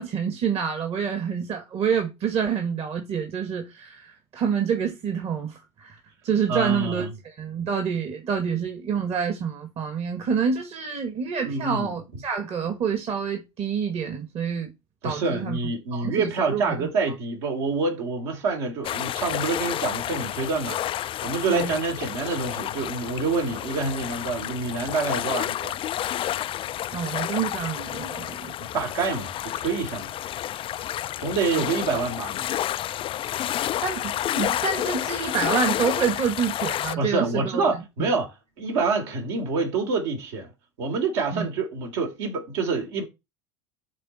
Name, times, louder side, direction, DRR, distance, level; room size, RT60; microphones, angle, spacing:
voice 1, 0.0-6.0 6.2-14.7 15.0-15.6 15.9-16.9 21.5-21.7 26.9-28.5 31.9-32.0 33.8-37.8 41.3-41.5, right 6 dB, 40° right, 2.0 m, -27 dB
voice 2, 6.5-7.1 11.4-12.2 15.0-20.8 21.2-25.8 28.6-30.1 31.2-32.4 37.0-40.5 40.8-43.0, right 4 dB, 70° right, 3.4 m, -27 dB
sound 1, 18.8-36.9, left 12 dB, 35° left, 0.4 m, -30 dB
12.0 x 4.1 x 4.4 m
hypercardioid pair, 80°, 16 cm